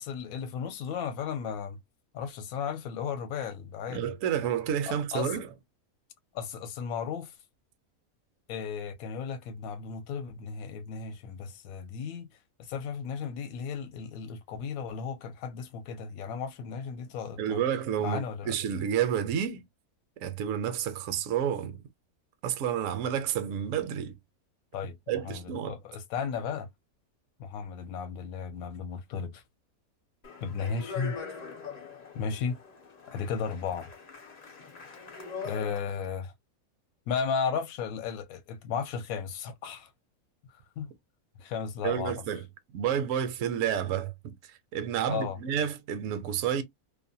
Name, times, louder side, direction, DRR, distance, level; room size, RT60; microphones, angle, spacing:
voice 1, 0.0-1.8 2.1-4.1 4.9-5.3 6.3-7.3 8.5-12.3 12.6-17.6 18.0-18.6 24.7-26.7 27.4-29.4 30.4-31.1 32.1-32.6 33.1-33.9 35.4-36.3 37.1-39.9 40.8-40.9 41.4-42.2 45.0-45.4, left 6 dB, 75° left, 1.0 m, -35 dB
voice 2, 3.9-5.5 17.4-18.2 18.5-19.6 20.2-21.8 22.4-24.2 25.1-25.8 41.8-42.4 42.7-46.6, right 9 dB, 70° right, 0.9 m, -30 dB
Speech, 30.2-36.1, left 5 dB, 45° left, 0.5 m, -42 dB
2.6 x 2.1 x 2.7 m
omnidirectional pair, 1.6 m